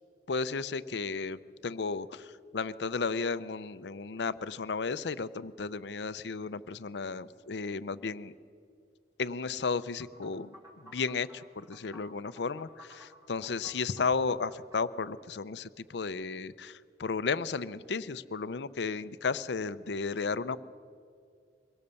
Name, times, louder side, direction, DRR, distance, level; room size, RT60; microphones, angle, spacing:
voice 1, 0.3-8.3 9.2-20.6, left 4 dB, 75° left, 15 dB, 0.6 m, -34 dB
sound 1, 10.0-15.1, equal, 20° right, 3.9 m, -54 dB
23.5 x 17.5 x 6.9 m, 2.4 s
head